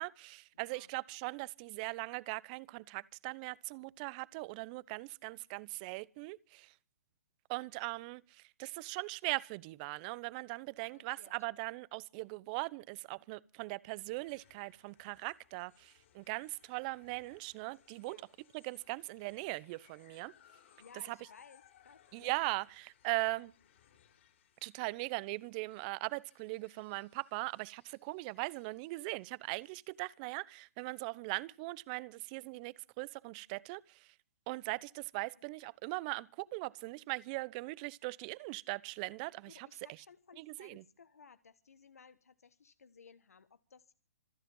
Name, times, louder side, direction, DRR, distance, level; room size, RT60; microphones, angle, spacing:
voice 1, 0.0-6.7 7.5-18.2 18.5-20.3 21.1-21.2 22.1-23.5 24.6-34.1 34.5-39.7 40.4-40.8, right 24 dB, 35° right, 0.8 m, -40 dB
voice 2, 0.5-0.9 10.8-11.3 18.0-18.2 20.8-22.5 39.5-43.9, left 6 dB, 80° left, 1.3 m, -59 dB
sound 1, 13.8-30.3, left 10 dB, 55° left, 4.5 m, -67 dB
26.0 x 10.0 x 5.5 m
hypercardioid pair, 135°, 8 cm